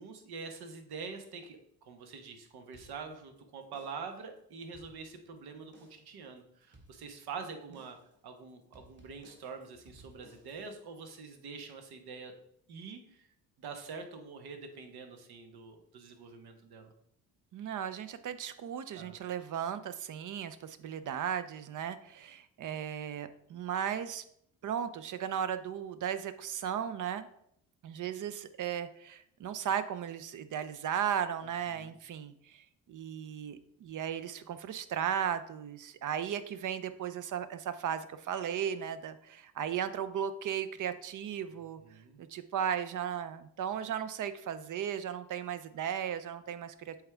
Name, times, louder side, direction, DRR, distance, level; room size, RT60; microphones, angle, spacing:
voice 1, 0.0-1.6 1.9-8.0 8.2-12.3 12.7-13.3 13.6-16.9 18.9-19.2 31.4-31.9 41.8-42.2, right 5 dB, 80° right, 6 dB, 1.1 m, -45 dB
sound 1, 2.7-3.4 3.7-4.2 4.6-5.4 5.7-6.2 6.7-7.4 7.7-8.2 8.7-10.7, right 1 dB, 30° right, 1.3 m, -60 dB
voice 2, 17.5-24.2 24.6-27.3 27.8-41.8 42.2-46.9, right 9 dB, 55° right, 12 dB, 0.6 m, -36 dB
7.9 x 3.5 x 3.4 m, 0.70 s
cardioid pair, 90°, 38 cm